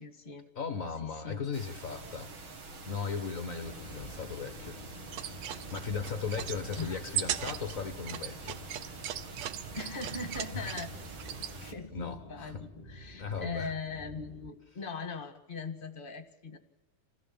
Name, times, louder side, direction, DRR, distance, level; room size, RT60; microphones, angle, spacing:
voice 1, 0.0-0.4 1.0-1.5 6.7-6.9 9.7-10.9 11.6-16.6, left 4 dB, 25° left, 7 dB, 1.3 m, -40 dB
voice 2, 0.5-2.4 2.8-4.8 5.3-8.6 10.5-10.8 11.9-12.6 13.2-13.7, left 5 dB, 55° left, 8 dB, 0.9 m, -37 dB
sound 1, 1.5-11.7, right 3 dB, 40° right, 2.8 m, -47 dB
sound 2, 3.6-14.5, left 1 dB, 10° right, 3.1 m, -50 dB
sound 3, 5.0-11.5, right 10 dB, 65° right, 2.0 m, -39 dB
29.0 x 16.0 x 8.7 m, 1.0 s
omnidirectional pair, 3.6 m